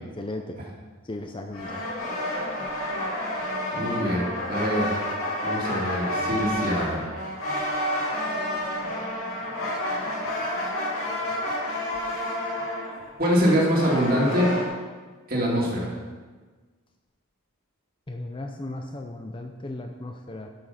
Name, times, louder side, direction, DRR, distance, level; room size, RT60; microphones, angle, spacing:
voice 1, 0.2-0.6 1.1-1.8 18.1-20.5, left 2 dB, 20° left, 4 dB, 0.5 m, -36 dB
sound 1, 1.5-14.7, left 1 dB, 65° left, 2.4 m, -30 dB
voice 2, 3.7-4.9 5.4-7.1 13.2-14.5 15.3-15.9, equal, 40° right, -4 dB, 2.6 m, -24 dB
12.0 x 6.2 x 5.7 m, 1.4 s
head